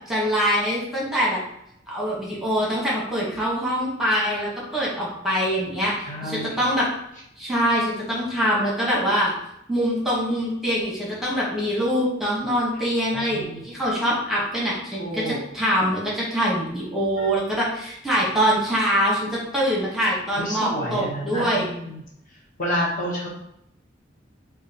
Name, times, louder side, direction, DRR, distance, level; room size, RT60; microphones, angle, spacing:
voice 1, 0.1-1.4 1.9-6.9 7.4-9.3 9.7-21.7, equal, ahead, -6 dB, 1.3 m, -24 dB
voice 2, 6.0-6.6 13.1-13.6 15.0-15.4 17.2-17.3 20.4-22.0 22.6-23.3, equal, 45° left, -4 dB, 1.2 m, -29 dB
6.9 x 2.4 x 2.9 m, 0.76 s
head